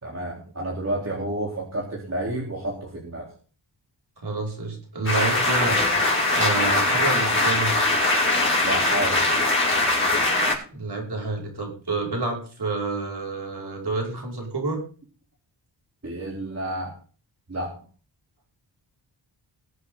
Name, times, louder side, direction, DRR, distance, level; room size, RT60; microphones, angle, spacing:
voice 1, 0.0-3.3 8.6-9.2 16.0-16.9 17.5-17.7, right 1 dB, 35° right, -3 dB, 3.8 m, -30 dB
voice 2, 4.2-5.8 6.4-7.7 10.7-14.8, right 3 dB, 60° right, 0 dB, 5.8 m, -28 dB
sound 1, 5.1-10.5, left 2 dB, 25° left, 5.8 m, -21 dB
21.0 x 8.0 x 4.0 m, 0.39 s
wide cardioid pair, 95°, 44 cm